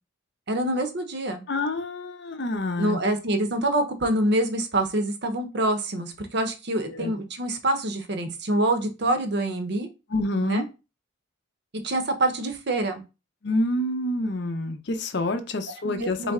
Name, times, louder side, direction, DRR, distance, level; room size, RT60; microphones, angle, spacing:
voice 1, 0.5-1.4 2.8-9.9 10.4-10.6 11.8-13.0 15.8-16.3, right 1 dB, 50° right, 0.7 m, -26 dB
voice 2, 1.5-3.0 6.9-7.1 10.1-10.7 13.4-16.3, left 2 dB, 55° left, 0.6 m, -27 dB
4.0 x 3.2 x 3.6 m
head